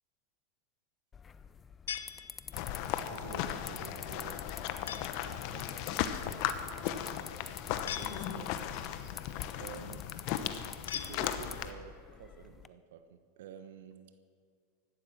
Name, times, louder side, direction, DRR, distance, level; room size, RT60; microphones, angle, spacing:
sound 1, 1.1-12.7, left 6 dB, 25° left, 0.5 m, -49 dB
sound 2, 1.9-2.8 4.9-5.4 7.9-8.7 10.9-11.8, left 9 dB, 90° left, 0.8 m, -42 dB
sound 3, 2.5-11.7, left 10 dB, 60° left, 0.9 m, -37 dB
voice 1, 3.1-4.5 5.2-6.5 8.0-8.6 9.6-10.4 10.9-14.1, right 8 dB, 80° right, 9 dB, 1.2 m, -50 dB
16.5 x 12.0 x 6.2 m, 2.1 s
hypercardioid pair, 110°, 0 cm